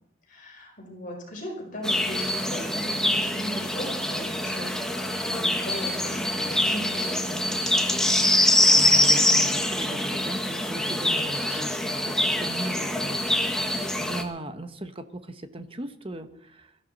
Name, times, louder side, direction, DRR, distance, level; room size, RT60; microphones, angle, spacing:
voice 1, 0.3-7.8, equal, 45° left, -1 dB, 5.1 m, -38 dB
sound 1, 1.8-14.2, left 1 dB, 5° left, 1.6 m, -24 dB
voice 2, 8.7-13.2 13.4-16.7, right 1 dB, 30° right, 8 dB, 1.2 m, -37 dB
22.0 x 14.0 x 4.1 m, 0.77 s
head